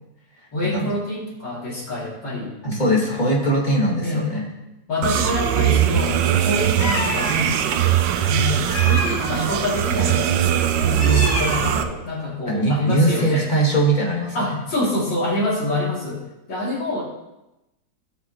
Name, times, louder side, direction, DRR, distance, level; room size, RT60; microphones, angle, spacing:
voice 1, 0.5-2.6 4.0-4.2 4.9-6.2 6.5-7.5 8.3-10.3 10.8-13.5 14.3-17.0, left 2 dB, 80° left, -6 dB, 3.5 m, -26 dB
voice 2, 2.6-4.5 12.5-14.5, right 1 dB, 25° left, -3 dB, 1.8 m, -20 dB
sound 1, 5.0-11.8, right 10 dB, 90° right, 1.3 m, -20 dB
Meow, 6.8-7.4 8.7-9.6 10.8-11.9, left 2 dB, 65° left, 2.1 m, -28 dB
16.5 x 5.8 x 3.0 m, 0.95 s
omnidirectional pair, 1.9 m